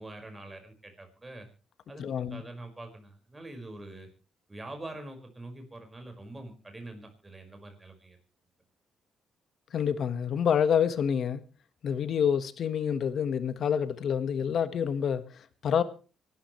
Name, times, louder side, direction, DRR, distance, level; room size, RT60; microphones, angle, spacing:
voice 1, 0.0-1.5 1.9-4.1 4.5-8.2, right 2 dB, 20° right, 5.2 m, -44 dB
voice 2, 2.0-2.4 9.7-11.4 11.8-15.8, left 8 dB, 60° left, 1.4 m, -27 dB
25.5 x 12.5 x 3.2 m
cardioid pair, 90°, 0 cm